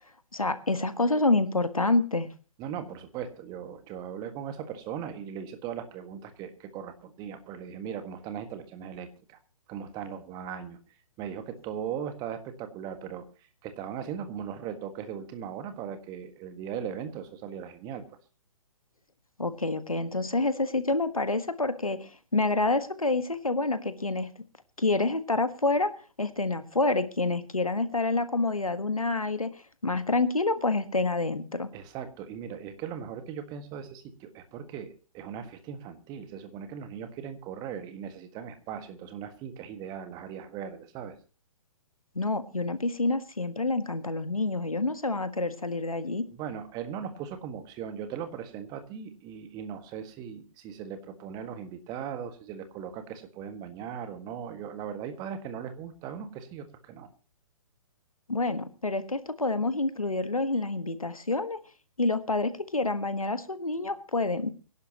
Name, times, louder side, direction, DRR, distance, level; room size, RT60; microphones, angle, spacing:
voice 1, 0.3-2.3 19.4-24.3 24.8-25.9 26.2-31.7 42.1-46.3 58.3-61.6 62.0-64.5, left 2 dB, 85° left, 11 dB, 1.4 m, -28 dB
voice 2, 2.6-9.4 9.7-10.8 11.2-18.0 31.7-41.1 46.3-57.1, right 8 dB, 25° right, 8 dB, 1.7 m, -38 dB
24.5 x 11.0 x 2.9 m, 0.35 s
figure-of-eight pair, 125°, 18 cm